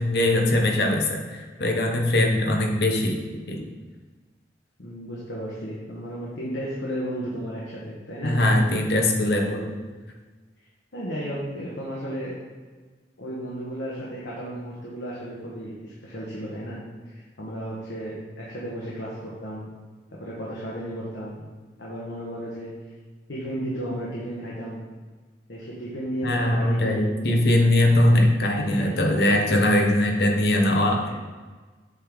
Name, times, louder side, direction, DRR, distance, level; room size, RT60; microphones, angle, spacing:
voice 1, 0.0-3.2 3.5-3.7 8.2-9.6 26.2-31.1, left 1 dB, 60° left, 2 dB, 0.9 m, -21 dB
voice 2, 4.8-8.6 9.4-9.7 10.9-12.3 13.2-19.7 20.2-21.5 21.8-22.7 23.3-24.8 25.5-27.0 28.1-28.9 31.0-31.1, equal, 80° left, -6 dB, 1.1 m, -34 dB
7.5 x 3.5 x 3.9 m, 1.4 s
head